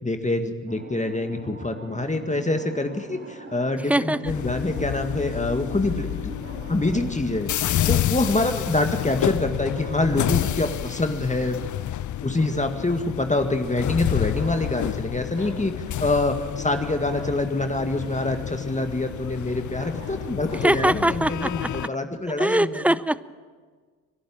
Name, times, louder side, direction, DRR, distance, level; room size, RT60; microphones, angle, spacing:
voice 1, 0.0-6.4 6.7-7.5 7.9-11.6 12.2-15.7 16.0-22.8, left 2 dB, 15° left, 6 dB, 1.9 m, -25 dB
sound 1, 0.7-7.0, right 2 dB, 35° right, 5.0 m, -42 dB
Bark, 2.5-3.6 6.4-7.0 7.4-7.5 9.7-10.8 14.3-15.0 15.3-15.6 17.1-17.4 19.7-20.7, right 3 dB, 85° right, 6.4 m, -44 dB
voice 2, 3.9-4.3 8.3-8.6 20.6-21.9 22.4-23.3, right 1 dB, 5° right, 18 dB, 0.6 m, -23 dB
sound 2, 4.2-21.9, left 12 dB, 45° left, 0.6 m, -30 dB
25.5 x 11.5 x 8.8 m, 1.5 s
hypercardioid pair, 45°, 41 cm